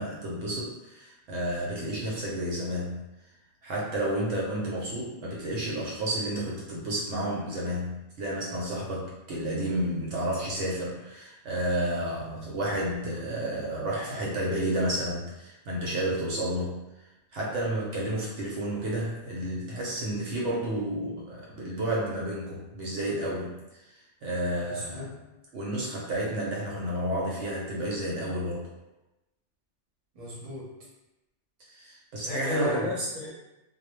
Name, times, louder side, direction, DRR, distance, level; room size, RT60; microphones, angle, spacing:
voice 1, 0.0-3.0 3.6-16.8 17.3-23.5 24.2-25.2 25.5-28.7 31.7-32.9, right 1 dB, 75° right, -4 dB, 0.9 m, -31 dB
voice 2, 24.6-25.1 30.1-30.7 32.2-33.3, equal, 35° right, -6 dB, 0.8 m, -34 dB
2.2 x 2.1 x 3.0 m, 0.96 s
omnidirectional pair, 1.3 m